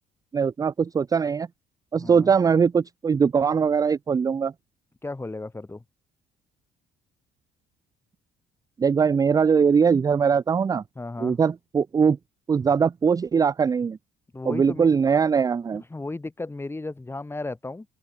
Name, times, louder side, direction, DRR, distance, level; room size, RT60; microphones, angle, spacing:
voice 1, 0.3-1.5 1.9-4.5 8.8-10.8 11.2-12.2 12.5-14.0 14.5-15.8, right 6 dB, 20° right, 0.4 m, -21 dB
voice 2, 1.9-2.3 5.0-5.8 10.9-11.4 14.3-14.9 15.7-17.9, left 2 dB, 15° left, 5.0 m, -34 dB
cardioid pair, 110°, 17 cm